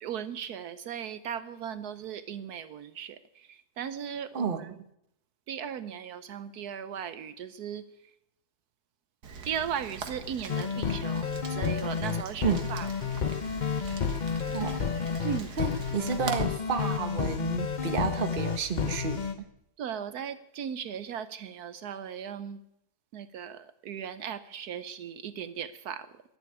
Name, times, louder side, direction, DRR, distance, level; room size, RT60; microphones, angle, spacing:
voice 1, 0.0-4.7 5.5-7.9 9.4-12.9 15.2-15.6 19.8-22.6 23.1-26.2, right 8 dB, 75° right, 13 dB, 1.3 m, -37 dB
voice 2, 4.3-4.8 12.4-12.7 14.5-14.8 15.6-19.5, right 6 dB, 35° right, 9 dB, 1.2 m, -31 dB
Rain, 9.2-16.4, right 5 dB, 90° right, 2.1 m, -42 dB
sound 1, 10.5-19.3, left 6 dB, 45° left, 0.6 m, -31 dB
sound 2, 12.4-19.3, equal, 65° left, 4.6 m, -46 dB
12.0 x 11.5 x 9.7 m, 0.78 s
omnidirectional pair, 1.7 m